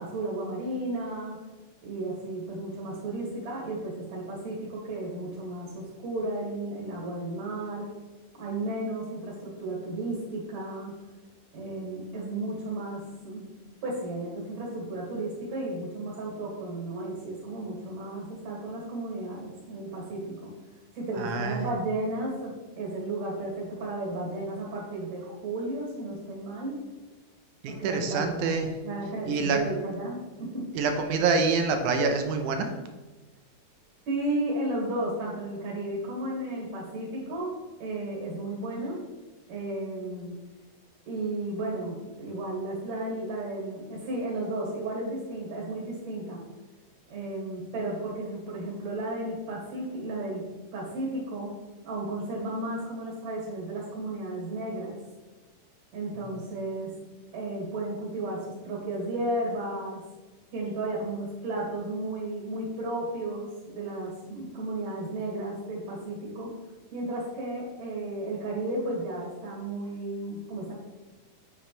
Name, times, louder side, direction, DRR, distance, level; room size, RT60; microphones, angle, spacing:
voice 1, 0.0-1.4 1.8-7.9 8.3-10.9 11.5-13.5 13.8-20.5 20.9-26.8 27.7-28.6 28.8-30.7 34.1-37.5 37.8-39.0 39.5-40.4 41.1-46.4 47.1-50.4 50.7-51.5 51.8-55.0 55.9-56.9 57.3-60.0 60.5-66.5 66.9-70.7, right 2 dB, 55° right, -4 dB, 3.1 m, -33 dB
voice 2, 21.2-21.7 27.6-28.7 29.3-29.6 30.7-32.7, right 4 dB, 75° right, 5 dB, 2.0 m, -26 dB
7.8 x 7.5 x 3.3 m, 1.2 s
omnidirectional pair, 4.0 m